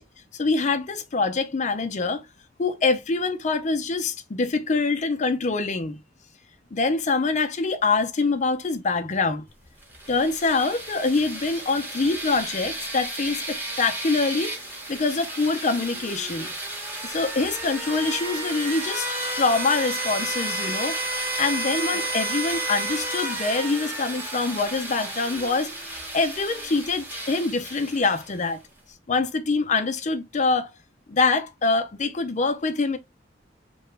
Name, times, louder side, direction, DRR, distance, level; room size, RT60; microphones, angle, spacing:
voice 1, 0.3-2.2 2.6-6.0 6.7-9.4 10.1-16.5 17.0-19.1 19.4-21.0 21.4-28.6 29.1-30.7 31.1-33.0, left 3 dB, 40° left, 0.5 m, -25 dB
sound 1, 9.8-28.5, right 2 dB, 10° right, 0.9 m, -32 dB
2.9 x 2.2 x 3.1 m
head